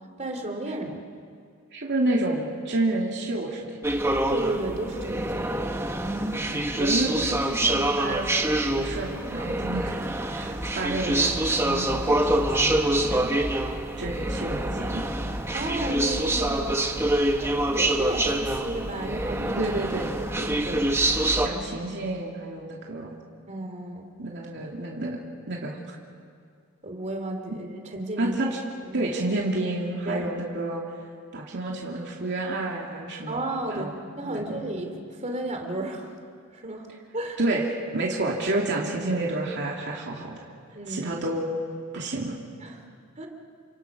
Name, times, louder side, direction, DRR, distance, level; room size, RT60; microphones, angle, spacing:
voice 1, 0.2-1.0 4.3-5.7 15.5-16.8 17.4-19.7 20.1-20.9 21.5-21.6 23.5-24.1 26.8-28.4 28.8-29.0 30.0-30.3 33.3-33.9 34.2-36.1 36.5-36.9 37.1-37.4 40.7-41.1 42.6-42.8 43.2-43.3, right 1 dB, 30° right, 3 dB, 2.9 m, -33 dB
voice 2, 1.7-3.8 6.7-8.5 8.8-10.0 10.3-13.4 14.0-15.0 19.6-20.2 21.4-23.1 24.2-25.2 25.5-25.8 27.5-27.6 28.2-28.5 28.9-30.8 31.3-33.5 33.8-33.9 34.2-34.6 37.4-40.4 40.9-41.5 41.9-42.3, right 2 dB, 55° right, -2 dB, 2.7 m, -29 dB
sound 1, 3.8-21.5, right 1 dB, 10° right, 1.3 m, -26 dB
30.0 x 26.0 x 6.1 m, 2.3 s
head